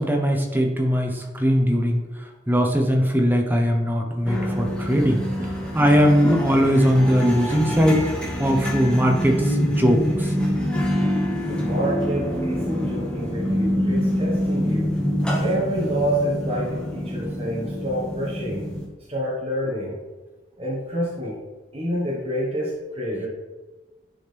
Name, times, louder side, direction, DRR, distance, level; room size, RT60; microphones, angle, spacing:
voice 1, 0.0-2.0 2.5-8.0 8.4-10.4, equal, 10° right, 2 dB, 0.9 m, -20 dB
sound 1, 4.3-18.9, equal, 5° left, 1.3 m, -26 dB
voice 2, 11.5-14.9 15.4-18.7 19.1-20.0 20.6-21.4 21.7-23.3, equal, 30° right, -6 dB, 1.6 m, -27 dB
10.0 x 5.0 x 3.5 m, 1.2 s
head